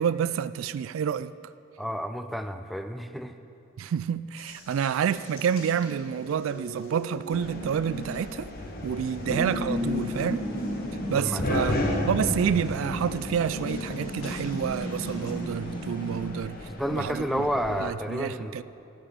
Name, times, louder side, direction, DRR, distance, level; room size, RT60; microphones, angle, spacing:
voice 1, 0.0-1.3 3.8-8.5 8.8-10.4 11.1-16.6 16.9-17.5 17.8-18.6, right 8 dB, 80° right, 0.3 m, -28 dB
voice 2, 1.8-3.3 11.2-11.4 16.6-18.6, equal, ahead, 0.3 m, -30 dB
Water tap faucet, 4.4-15.3, equal, 90° left, 1.7 m, -41 dB
sound 1, 7.3-17.8, left 1 dB, 45° left, 1.0 m, -35 dB
Spooky Stairwell, 9.3-16.3, left 1 dB, 25° left, 1.2 m, -34 dB
12.5 x 9.0 x 5.2 m
head